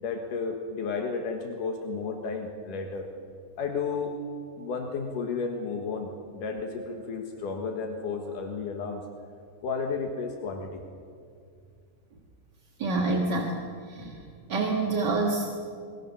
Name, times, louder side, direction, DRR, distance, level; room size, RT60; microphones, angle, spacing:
voice 1, 0.0-3.1 3.6-4.1 4.6-9.0 9.6-10.8, left 4 dB, 80° left, 3 dB, 3.2 m, -32 dB
voice 2, 12.8-14.2 14.5-15.5, right 3 dB, 40° right, 0 dB, 1.9 m, -27 dB
27.5 x 22.0 x 7.2 m, 2.3 s
omnidirectional pair, 3.7 m